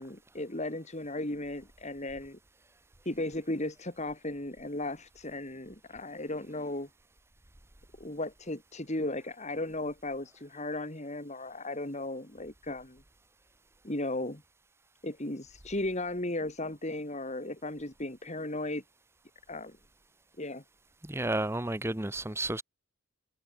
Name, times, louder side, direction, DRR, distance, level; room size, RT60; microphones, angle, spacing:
voice 1, 0.0-2.4 3.1-6.9 8.0-13.0 13.8-14.4 15.0-18.8 19.5-19.8 20.4-20.6, left 1 dB, 30° left, 2.4 m, -36 dB
voice 2, 21.0-22.6, right 2 dB, 10° right, 0.8 m, -32 dB
head